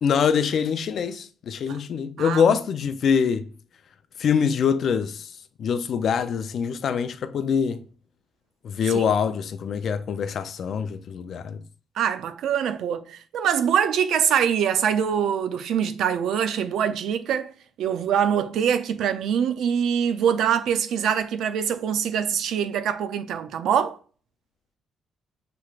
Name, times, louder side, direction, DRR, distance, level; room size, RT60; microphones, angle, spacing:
voice 1, 0.0-3.5 4.2-5.3 5.6-7.8 8.6-11.6, left 7 dB, 60° left, 0.4 m, -24 dB
voice 2, 12.0-17.5 17.8-24.0, right 8 dB, 80° right, 0.5 m, -24 dB
5.9 x 3.0 x 2.4 m
cardioid pair, 90°, 0 cm